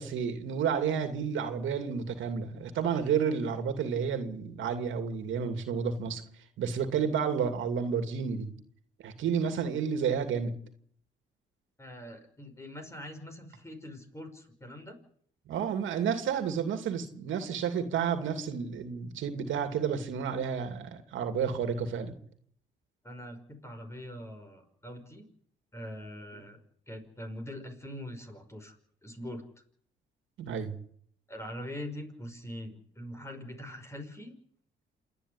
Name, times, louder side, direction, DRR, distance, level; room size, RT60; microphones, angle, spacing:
voice 1, 0.0-6.2 6.6-8.5 9.0-10.5 15.5-22.1 30.4-30.8, right 7 dB, 75° right, 2.7 m, -31 dB
voice 2, 11.8-15.0 23.0-25.3 25.7-26.6 26.9-28.7 29.0-29.4 31.3-34.4, left 1 dB, 15° left, 5.6 m, -43 dB
27.5 x 10.0 x 9.9 m
cardioid pair, 90°, 20 cm